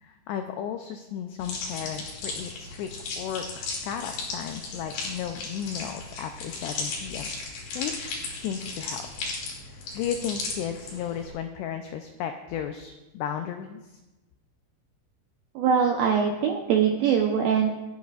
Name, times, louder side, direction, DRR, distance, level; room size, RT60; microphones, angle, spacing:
voice 1, 0.0-2.9 3.2-7.3 7.7-9.0 9.9-13.9, left 9 dB, 85° left, 6 dB, 2.4 m, -34 dB
sound 1, 1.4-11.3, left 3 dB, 70° left, 4.8 m, -36 dB
voice 2, 15.6-17.7, right 7 dB, 80° right, 1 dB, 2.1 m, -22 dB
28.0 x 10.5 x 2.5 m, 1.1 s
omnidirectional pair, 5.6 m